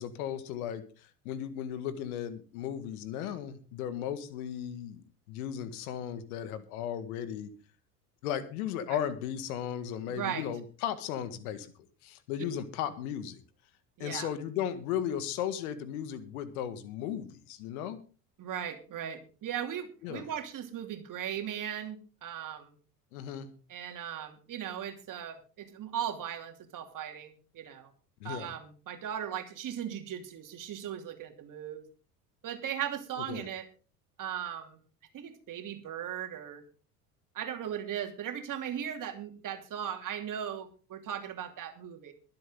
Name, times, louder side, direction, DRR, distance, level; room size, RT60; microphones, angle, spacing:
voice 1, 0.0-7.5 8.2-11.7 12.0-13.4 14.0-18.0 20.0-20.3 23.1-23.5 28.2-28.5 33.3-33.4, left 9 dB, 65° left, 12 dB, 1.8 m, -36 dB
voice 2, 10.1-10.5 14.0-14.3 18.4-22.7 23.7-27.9 28.2-31.8 32.4-33.7 34.2-34.8 35.1-36.6 37.3-42.1, right 9 dB, 40° right, 6 dB, 2.8 m, -38 dB
23.0 x 7.8 x 3.8 m, 0.37 s
hypercardioid pair, 70°, 47 cm